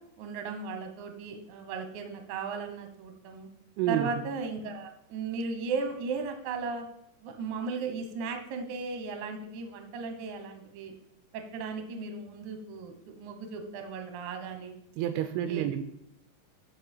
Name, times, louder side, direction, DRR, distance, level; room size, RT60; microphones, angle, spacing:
voice 1, 0.2-3.5 3.9-6.8 7.2-10.9 11.3-14.7 15.4-15.7, right 4 dB, 65° right, 6 dB, 2.1 m, -36 dB
voice 2, 3.8-4.2 15.0-15.8, right 10 dB, 85° right, 9 dB, 2.5 m, -29 dB
13.5 x 5.4 x 4.4 m, 0.77 s
omnidirectional pair, 4.8 m